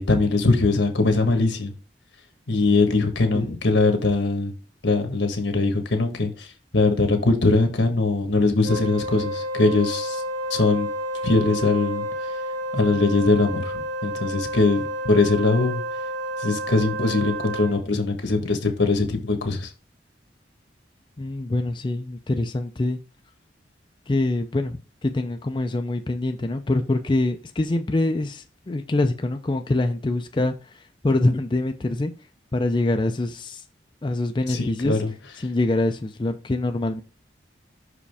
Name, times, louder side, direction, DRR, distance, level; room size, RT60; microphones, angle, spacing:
voice 1, 0.0-1.7 2.5-4.5 4.8-6.5 6.7-10.2 10.5-10.9 11.2-12.0 12.7-15.8 16.4-19.7 34.5-35.1, left 3 dB, 85° left, 1.3 m, -21 dB
Wind instrument woodwind instrument, 8.6-17.8, equal, 80° right, 1.6 m, -30 dB
voice 2, 21.2-23.0 24.1-32.1 32.5-33.6 34.0-35.0 35.4-37.0, left 2 dB, 25° left, 0.4 m, -25 dB
5.7 x 4.9 x 3.4 m
head